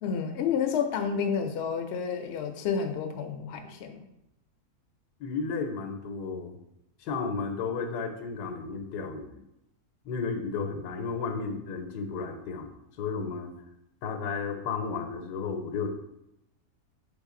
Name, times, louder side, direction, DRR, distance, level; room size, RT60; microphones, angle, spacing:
voice 1, 0.0-4.1, left 6 dB, 70° left, 5 dB, 0.6 m, -30 dB
voice 2, 5.2-6.6 7.0-9.4 10.0-13.5 14.0-15.9, left 5 dB, 85° left, 6 dB, 1.2 m, -33 dB
4.0 x 3.5 x 3.7 m, 0.84 s
omnidirectional pair, 1.7 m